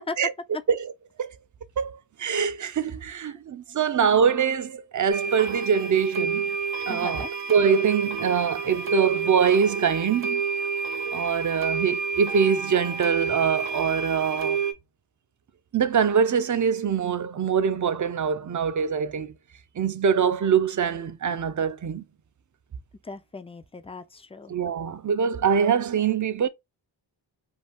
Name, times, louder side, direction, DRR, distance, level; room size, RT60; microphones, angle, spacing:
voice 1, 1.8-6.5 6.9-10.4 11.1-14.6 15.7-19.3 19.8-22.0 24.5-26.5, right 7 dB, 40° right, 0.5 m, -24 dB
sound 1, 5.1-14.7, right 5 dB, 85° right, 0.7 m, -29 dB
voice 2, 6.9-7.3 23.0-24.5, left 3 dB, 15° left, 0.4 m, -37 dB
2.6 x 2.3 x 3.4 m
cardioid pair, 40°, 48 cm